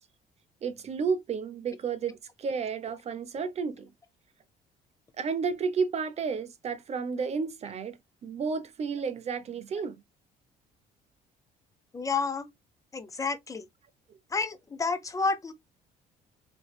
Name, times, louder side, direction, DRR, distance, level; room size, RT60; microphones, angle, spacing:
voice 1, 0.6-3.8 5.2-10.0, right 5 dB, 40° right, 0.7 m, -32 dB
voice 2, 11.9-12.5 12.9-13.7 14.3-15.5, left 4 dB, 20° left, 0.7 m, -30 dB
3.5 x 3.1 x 2.3 m
cardioid pair, 110°, 17 cm